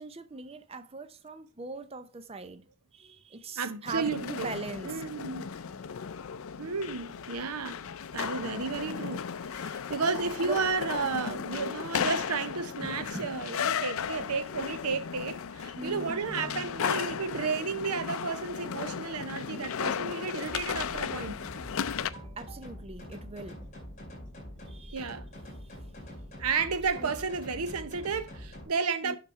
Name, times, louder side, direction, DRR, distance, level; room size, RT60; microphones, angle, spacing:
voice 1, 0.0-5.0 10.4-10.6 12.8-13.3 15.8-16.7 21.9-23.8 24.7-25.1 27.0-27.1 27.5-27.7 29.0-29.2, right 3 dB, 25° right, 0.5 m, -41 dB
voice 2, 3.6-4.5 4.8-5.5 6.6-7.8 8.1-21.4 24.9-25.3 26.4-29.2, right 5 dB, 85° right, 0.8 m, -32 dB
sound 1, 3.8-22.1, left 7 dB, 70° left, 0.4 m, -35 dB
sound 2, 20.4-28.6, left 1 dB, 30° left, 3.5 m, -45 dB
7.1 x 5.9 x 4.5 m
head